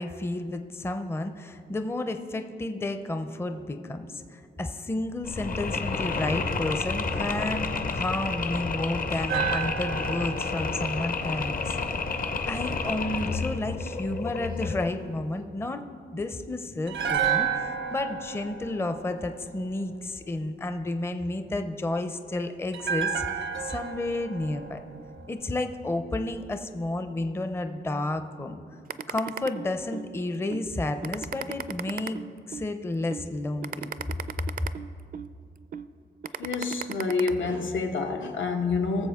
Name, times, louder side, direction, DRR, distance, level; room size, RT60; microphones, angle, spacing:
voice 1, 0.0-11.8 12.5-15.8 16.1-24.8 25.3-28.6 29.1-32.2 32.5-33.9, left 2 dB, 10° left, 7 dB, 0.5 m, -31 dB
Mechanisms, 5.2-15.0, left 4 dB, 45° left, 0.7 m, -30 dB
sound 1, 9.3-12.5 16.9-20.1 22.7-25.9 26.2-26.4, right 8 dB, 85° right, 0.9 m, -32 dB
sound 2, 28.9-30.1 30.5-30.7 31.0-32.7 33.1-33.3 33.6-35.3 35.7-35.9 36.2-37.3, right 7 dB, 50° right, 0.4 m, -35 dB
voice 2, 36.4-39.1, left 4 dB, 85° left, 4 dB, 1.1 m, -28 dB
19.0 x 7.1 x 3.5 m, 2.3 s
wide cardioid pair, 120°, 19 cm